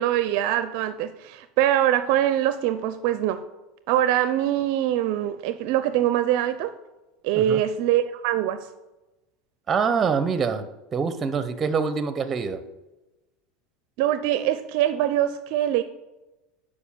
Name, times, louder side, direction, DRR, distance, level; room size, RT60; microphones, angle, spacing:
voice 1, 0.0-3.4 3.9-6.7 7.2-8.6 14.0-15.8, right 12 dB, 65° right, 11 dB, 0.5 m, -23 dB
voice 2, 9.7-10.6 10.9-12.7, right 5 dB, 30° right, 12 dB, 0.9 m, -25 dB
7.1 x 5.0 x 7.1 m, 1.0 s
hypercardioid pair, 100°, 0 cm